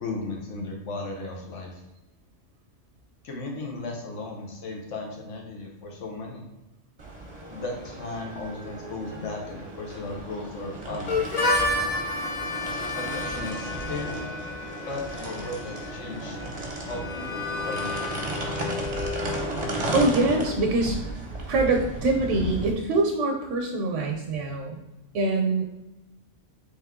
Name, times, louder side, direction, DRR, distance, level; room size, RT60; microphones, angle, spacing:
voice 1, 0.0-1.8 3.2-6.4 7.5-11.3 12.9-14.3 14.8-16.4 16.8-18.6, left 2 dB, 80° left, 0 dB, 1.3 m, -36 dB
sound 1, 7.0-22.7, right 2 dB, 40° right, 0.6 m, -35 dB
Harmonica, 11.1-20.7, left 3 dB, 45° left, 0.5 m, -31 dB
voice 2, 19.9-21.0 21.5-24.8 25.1-25.8, right 2 dB, 80° right, 2 dB, 0.9 m, -24 dB
3.4 x 3.2 x 3.6 m, 0.95 s
omnidirectional pair, 1.2 m